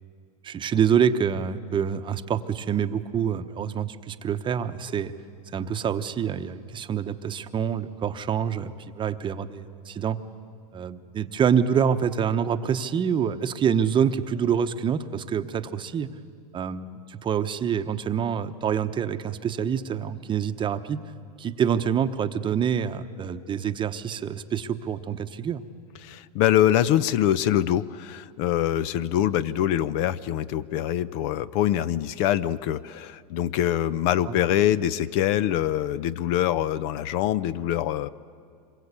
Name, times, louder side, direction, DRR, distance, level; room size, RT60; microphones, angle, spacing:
voice 1, 0.4-5.1 5.5-10.2 10.7-16.1 16.5-21.0 21.4-25.6 34.3-34.4, right 8 dB, 25° right, 9 dB, 0.9 m, -26 dB
voice 2, 26.0-38.1, left 11 dB, 55° left, 17 dB, 0.7 m, -24 dB
26.0 x 22.5 x 8.3 m, 2.3 s
supercardioid pair, 120°, 19 cm